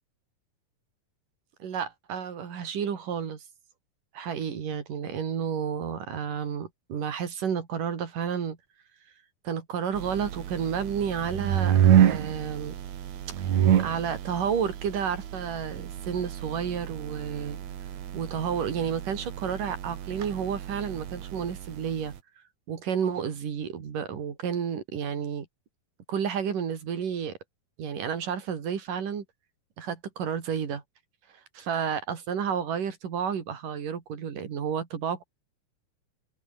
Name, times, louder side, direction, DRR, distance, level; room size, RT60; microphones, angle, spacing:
voice 1, 1.6-3.4 4.1-8.6 9.4-12.8 13.4-13.5 13.8-17.6 18.1-22.1 22.7-25.5 26.1-27.3 27.8-29.2 29.8-30.8 31.5-35.2, right 7 dB, 80° right, 4.6 m, -31 dB
sound 1, 9.9-22.2, right 10 dB, 60° right, 2.8 m, -28 dB
open air
omnidirectional pair, 3.7 m